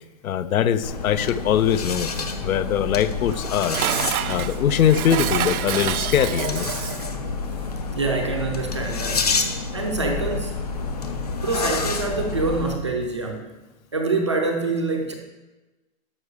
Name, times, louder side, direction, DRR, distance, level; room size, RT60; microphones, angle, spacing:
voice 1, 0.2-2.1 2.4-3.8 4.3-6.7, left 9 dB, 70° left, 14 dB, 0.8 m, -22 dB
sound 1, 0.8-12.8, left 4 dB, 30° left, 0.5 m, -29 dB
Dishes pots and pans, 3.3-7.1, right 11 dB, 85° right, 0.7 m, -27 dB
sound 2, 5.3-13.3, left 2 dB, 90° left, 3.6 m, -37 dB
voice 2, 8.0-9.3 9.7-10.5 11.4-13.5 13.9-15.1, right 3 dB, 20° right, 2 dB, 0.5 m, -25 dB
12.0 x 5.7 x 6.5 m, 1.2 s
hypercardioid pair, 180°, 43 cm